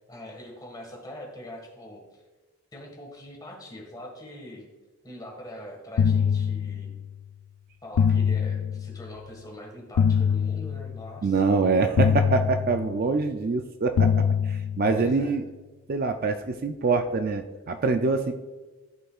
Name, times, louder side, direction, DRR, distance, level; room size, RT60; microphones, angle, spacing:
voice 1, 0.1-2.2 2.7-4.7 5.0-6.9 7.8-11.4 14.9-15.4, equal, 15° left, 0 dB, 1.6 m, -42 dB
sound 1, 6.0-7.2 8.0-9.2 10.0-11.2 12.0-13.2 14.0-15.2, left 7 dB, 90° left, 0.3 m, -24 dB
voice 2, 11.2-15.4 15.9-18.3, right 4 dB, 40° right, 7 dB, 0.4 m, -25 dB
13.5 x 5.4 x 2.4 m, 1.2 s
head